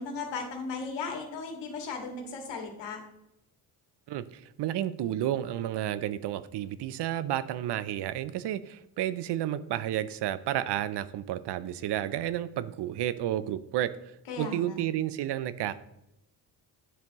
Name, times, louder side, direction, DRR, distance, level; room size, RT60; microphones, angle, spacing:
voice 1, 0.0-3.0 14.3-14.8, left 4 dB, 75° left, 3 dB, 2.1 m, -36 dB
voice 2, 4.1-13.9 14.4-15.8, right 12 dB, 70° right, 15 dB, 0.6 m, -31 dB
10.5 x 7.2 x 3.0 m, 0.86 s
cardioid pair, 75°, 43 cm